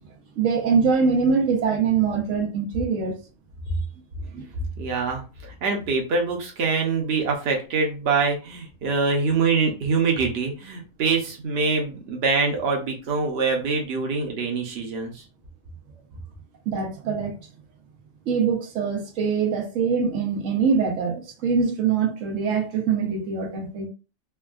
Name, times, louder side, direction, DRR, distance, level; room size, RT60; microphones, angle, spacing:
voice 1, 0.4-3.2 4.3-4.5 16.7-17.3 18.3-23.9, right 5 dB, 80° right, 1.1 m, -23 dB
voice 2, 4.8-5.2 5.6-15.2, right 4 dB, 60° right, 1.0 m, -24 dB
3.4 x 2.2 x 2.3 m
omnidirectional pair, 1.3 m